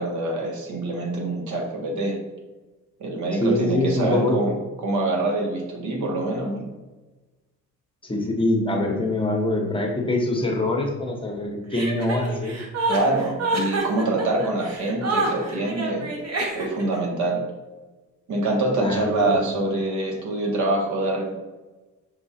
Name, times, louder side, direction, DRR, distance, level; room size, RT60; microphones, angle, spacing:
voice 1, 0.0-2.2 3.0-6.6 12.9-16.1 16.5-17.4 18.3-21.3, right 2 dB, 75° right, 0 dB, 1.2 m, -25 dB
voice 2, 3.4-4.3 8.0-12.6 18.8-19.4, left 1 dB, 15° left, 0 dB, 0.9 m, -24 dB
Chuckle chortle, 11.7-16.9, right 2 dB, 55° right, 1.2 m, -27 dB
5.5 x 2.3 x 4.2 m, 1.2 s
cardioid pair, 90°, 30 cm